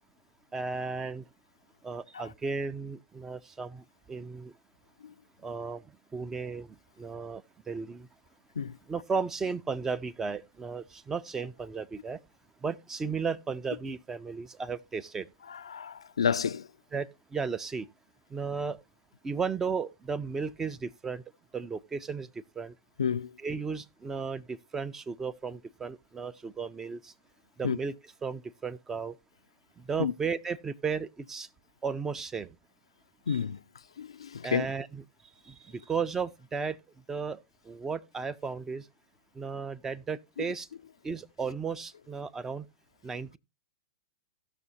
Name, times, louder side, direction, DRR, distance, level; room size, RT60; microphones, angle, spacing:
voice 1, 0.5-1.2 1.8-4.5 5.4-5.8 6.1-8.1 8.9-12.2 12.6-15.3 16.9-17.9 18.3-18.8 19.2-21.2 21.5-22.3 22.6-22.7 23.4-27.1 27.6-27.9 28.2-29.1 29.8-31.5 31.8-32.5 33.3-33.4 34.4-35.0 35.4-36.8 37.1-37.4 37.7-38.9 39.4-40.7 41.0-42.7 43.0-43.4, right 5 dB, 15° right, 0.5 m, -34 dB
voice 2, 15.5-16.7 23.0-23.3 27.6-27.8 30.0-30.1 33.3-33.6 34.0-34.7 40.4-40.5, left 7 dB, 80° left, 0.4 m, -30 dB
16.5 x 6.2 x 2.8 m
hypercardioid pair, 115°, 3 cm